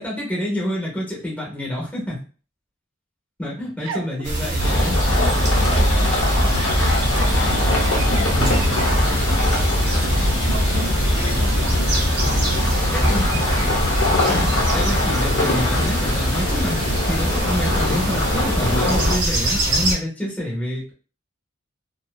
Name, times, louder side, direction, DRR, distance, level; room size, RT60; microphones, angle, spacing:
voice 1, 0.0-2.2 3.4-5.0 6.8-6.9 13.1-13.4 14.3-16.8 17.1-20.9, left 1 dB, 10° left, -5 dB, 0.7 m, -27 dB
voice 2, 3.8-4.3 6.2-6.9 7.2-9.5 10.4-12.0 14.3-14.6 15.4-15.5, right 5 dB, 75° right, 6 dB, 0.4 m, -37 dB
sound 1, 4.2-19.9, right 1 dB, 60° right, 0.9 m, -25 dB
sound 2, 4.6-19.2, left 1 dB, 75° left, 0.7 m, -21 dB
sound 3, 9.3-17.7, left 1 dB, 40° left, 0.4 m, -37 dB
2.5 x 2.2 x 2.3 m, 0.38 s
head